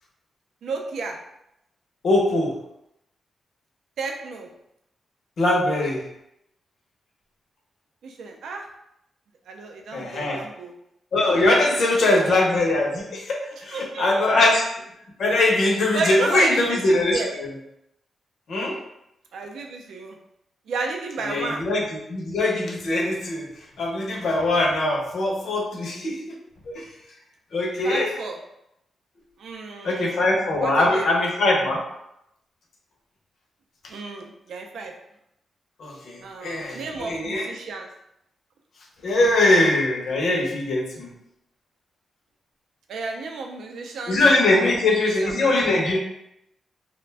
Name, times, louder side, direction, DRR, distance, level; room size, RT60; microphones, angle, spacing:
voice 1, 0.6-1.2 4.0-4.5 8.0-8.7 9.5-10.7 11.7-12.2 13.7-14.3 15.9-17.4 19.3-20.2 20.7-21.6 27.8-28.4 29.4-30.3 30.6-31.1 33.9-34.9 36.2-37.9 42.9-44.2 44.6-44.8 45.2-45.4, right 3 dB, 75° right, 3 dB, 0.4 m, -32 dB
voice 2, 2.0-2.5 5.4-6.0 9.9-10.4 11.1-14.7 15.2-17.2 18.5-18.7 21.2-23.5 23.8-26.2 26.7-26.8 27.5-28.1 29.8-31.8 35.8-37.5 39.0-41.1 44.1-46.0, left 2 dB, 55° left, -1 dB, 0.6 m, -21 dB
2.4 x 2.1 x 3.2 m, 0.81 s
wide cardioid pair, 175°, 0 cm